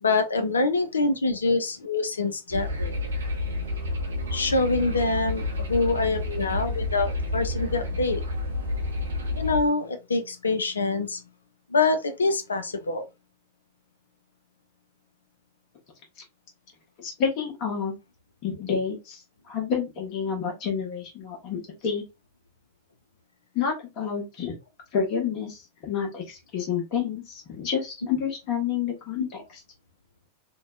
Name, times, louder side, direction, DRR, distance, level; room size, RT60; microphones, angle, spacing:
voice 1, 0.0-3.0 4.3-8.2 9.4-11.2 11.7-13.1, left 3 dB, 75° left, 0.4 m, -25 dB
sound 1, 2.5-9.6, left 2 dB, 65° right, 0.6 m, -30 dB
voice 2, 17.0-17.9 18.4-19.2 19.5-22.0 23.5-24.5 24.9-29.6, left 7 dB, 40° left, 1.0 m, -29 dB
2.5 x 2.1 x 2.3 m
figure-of-eight pair, 90°, 0 cm